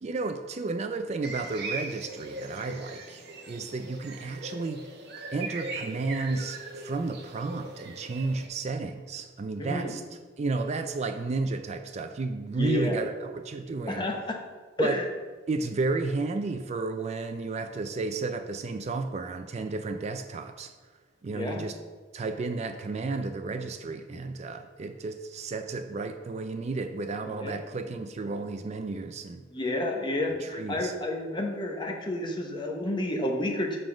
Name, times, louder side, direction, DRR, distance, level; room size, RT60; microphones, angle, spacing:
voice 1, 0.0-4.9 5.3-10.0 10.4-14.0 14.8-15.0 15.5-20.7 21.2-21.8 22.1-29.4 30.4-30.9, right 3 dB, 35° right, 7 dB, 0.3 m, -32 dB
sound 1, 1.2-8.5, right 2 dB, 60° right, 0.9 m, -40 dB
voice 2, 9.6-9.9 12.6-13.0 13.9-14.4 14.8-15.0 21.3-21.6 27.3-27.6 29.5-33.8, left 1 dB, 25° left, 1 dB, 0.9 m, -30 dB
6.9 x 3.8 x 6.0 m, 1.4 s
head